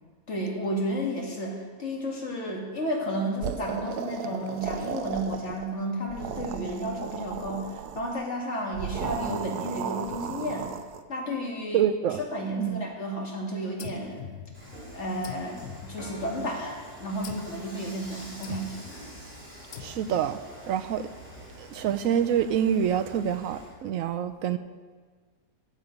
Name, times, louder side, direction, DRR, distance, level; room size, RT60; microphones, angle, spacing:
voice 1, 0.3-10.7 11.1-11.9 12.3-14.3 14.9-18.9, equal, 50° left, -1 dB, 2.2 m, -32 dB
sound 1, 3.4-5.7 6.0-8.2 8.7-11.0, right 8 dB, 85° right, 1.2 m, -35 dB
voice 2, 11.7-12.2 12.6-12.8 19.8-20.4 20.7-21.1 21.6-24.6, right 9 dB, 70° right, 10 dB, 0.9 m, -26 dB
sound 2, 13.8-14.8 15.2-16.5 17.2-17.7 18.4-19.0 19.7-20.4, left 9 dB, 70° left, 1.1 m, -43 dB
Dishes pots and pans / Frying (food), 14.5-23.7, equal, 5° right, 3.5 m, -46 dB
15.0 x 7.2 x 5.2 m, 1.5 s
omnidirectional pair, 1.6 m